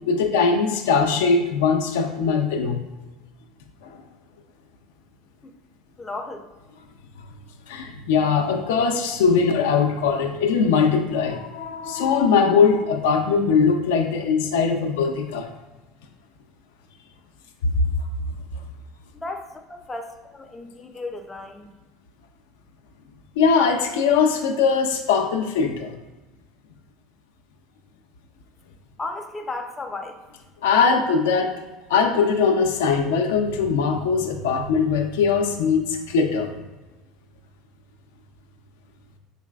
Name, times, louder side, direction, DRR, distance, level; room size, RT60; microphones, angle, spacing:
voice 1, 0.1-2.8 7.7-15.5 17.6-17.7 23.4-26.0 30.6-31.5 31.9-36.5, left 5 dB, 80° left, 4 dB, 0.4 m, -21 dB
voice 2, 6.0-6.5 19.1-21.7 29.0-30.2, left 2 dB, 15° left, 5 dB, 0.4 m, -34 dB
3.9 x 3.1 x 2.3 m, 1.1 s
hypercardioid pair, 85°, 0 cm